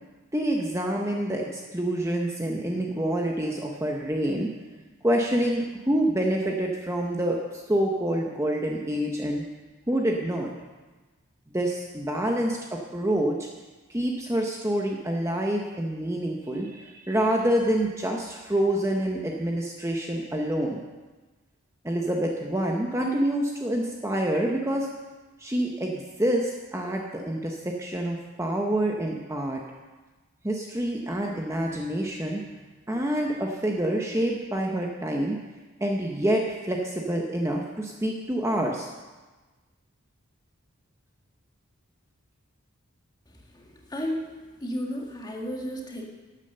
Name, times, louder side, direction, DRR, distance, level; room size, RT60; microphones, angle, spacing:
voice 1, 0.3-4.5 4.8-9.4 9.9-10.5 11.5-13.5 13.9-20.8 21.8-24.9 25.4-29.6 30.4-32.4 32.9-35.4 35.8-38.9, right 1 dB, 15° right, 0 dB, 0.9 m, -27 dB
voice 2, 43.5-44.3 44.6-46.1, equal, 20° left, 0 dB, 1.7 m, -33 dB
12.0 x 9.0 x 6.8 m, 1.2 s
head